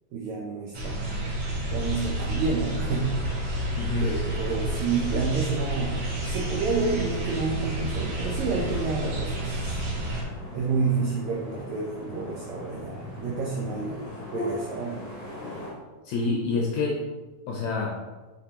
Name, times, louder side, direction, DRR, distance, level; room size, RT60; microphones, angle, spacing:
voice 1, 0.1-1.3 1.6-3.3 4.0-9.8 10.5-15.0, right 4 dB, 80° right, -2 dB, 1.6 m, -29 dB
sound 1, 0.7-10.2, right 1 dB, 55° right, 1.7 m, -30 dB
sound 2, 2.7-15.7, left 1 dB, 35° left, 1.2 m, -41 dB
voice 2, 3.8-4.1 14.3-14.5 16.1-17.0 17.5-18.0, left 3 dB, 75° left, -2 dB, 1.7 m, -27 dB
6.6 x 5.3 x 2.9 m, 1.2 s
omnidirectional pair, 4.0 m